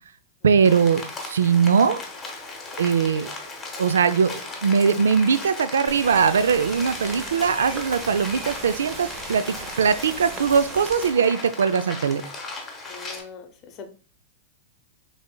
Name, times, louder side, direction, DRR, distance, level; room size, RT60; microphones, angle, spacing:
voice 1, 0.4-2.0 2.8-3.3 3.8-12.2, right 6 dB, 85° right, 13 dB, 0.3 m, -21 dB
Rain, 0.6-13.2, left 3 dB, 15° left, 1.0 m, -37 dB
sound 1, 5.9-11.1, right 3 dB, 30° right, 0.9 m, -38 dB
voice 2, 12.9-13.9, left 5 dB, 35° left, 6 dB, 0.7 m, -42 dB
5.2 x 3.2 x 2.2 m, 0.38 s
hypercardioid pair, 120°, 0 cm